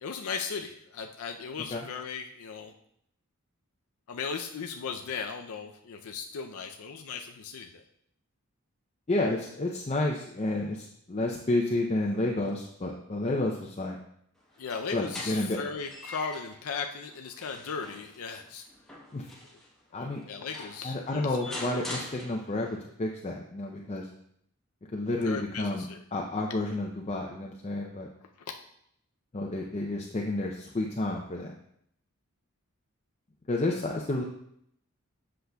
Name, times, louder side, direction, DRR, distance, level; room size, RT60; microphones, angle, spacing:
voice 1, 0.0-2.7 4.1-7.8 14.6-18.7 19.9-21.9 25.2-26.0, left 5 dB, 85° left, 4 dB, 0.5 m, -37 dB
voice 2, 9.1-14.0 14.9-15.6 19.1-19.3 19.9-20.2 20.6-24.1 24.9-25.9 26.1-28.1 29.3-31.5 33.5-34.2, left 2 dB, 30° left, 0 dB, 0.5 m, -30 dB
sound 1, 14.5-16.6 17.1-19.7 20.2-20.3 20.5-22.8, left 1 dB, 5° left, 1.0 m, -43 dB
7.9 x 6.3 x 2.3 m, 0.73 s
head